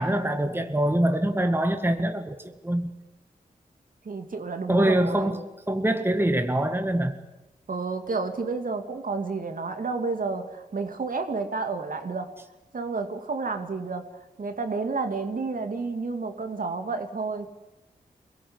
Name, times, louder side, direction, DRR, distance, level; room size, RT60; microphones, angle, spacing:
voice 1, 0.0-2.9 4.7-5.4 5.7-7.1, right 1 dB, 15° right, 7 dB, 1.8 m, -24 dB
voice 2, 4.0-5.3 7.7-12.3 12.7-14.1 14.4-17.5, right 4 dB, 60° right, 6 dB, 2.7 m, -30 dB
23.0 x 17.5 x 9.8 m, 1.0 s
cardioid pair, 50°, 16 cm